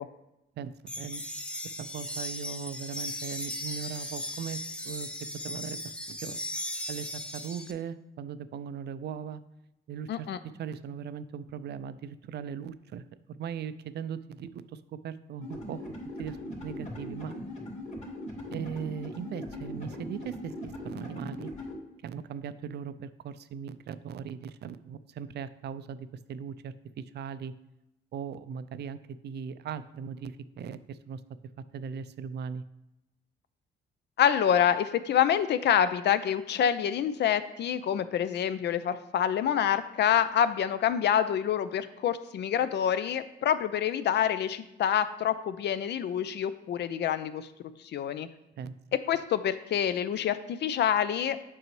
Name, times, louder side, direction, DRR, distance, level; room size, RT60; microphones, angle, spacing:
voice 1, 0.6-5.1 5.4-6.4 6.9-9.4 9.9-10.3 10.6-15.8 16.2-16.4 16.6-17.4 18.5-21.5 22.0-27.5 28.1-29.0 29.2-31.2 31.7-32.6 48.6-48.7, right 7 dB, 60° right, 13 dB, 0.4 m, -39 dB
sound 1, 0.9-7.7, left 1 dB, 5° left, 0.6 m, -37 dB
voice 2, 10.1-10.4 34.2-47.5 47.8-48.3 49.1-51.4, left 9 dB, 60° left, 13 dB, 0.5 m, -27 dB
sound 2, 15.4-21.7, left 1 dB, 35° left, 2.4 m, -40 dB
7.7 x 5.3 x 3.2 m, 0.92 s
cardioid pair, 90°, 20 cm